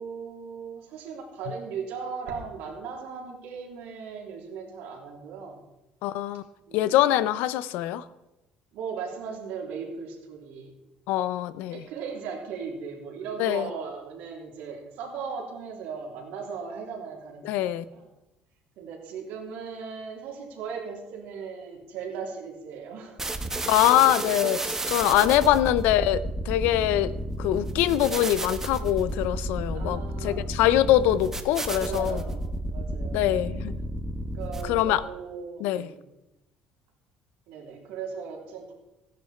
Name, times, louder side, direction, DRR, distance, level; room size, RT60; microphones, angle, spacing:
voice 1, 0.0-5.6 6.6-7.2 8.7-10.7 11.6-18.1 18.8-23.2 25.0-25.5 29.7-30.5 31.7-33.3 34.3-35.9 37.5-38.7, right 5 dB, 80° right, 3.4 m, -37 dB
voice 2, 6.0-6.4 6.7-8.0 11.1-11.8 13.4-13.7 17.4-17.8 23.7-27.1 27.4-32.2 33.1-33.7 34.7-35.0 35.6-35.9, left 13 dB, 85° left, 0.6 m, -23 dB
sound 1, 23.2-35.0, right 1 dB, 15° right, 1.2 m, -32 dB
14.5 x 10.5 x 4.4 m
cardioid pair, 115°, 3 cm